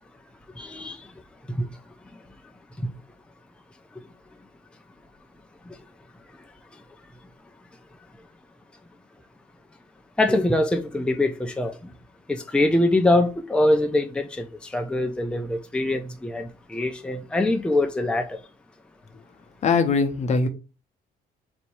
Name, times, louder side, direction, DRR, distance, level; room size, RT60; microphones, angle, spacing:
voice 1, 0.6-1.0 1.5-1.7 5.7-5.8 10.2-11.7 12.3-18.4, left 1 dB, 5° left, 0.6 m, -23 dB
voice 2, 19.6-20.5, left 4 dB, 45° left, 0.7 m, -21 dB
4.1 x 2.8 x 4.7 m
cardioid pair, 110°, 17 cm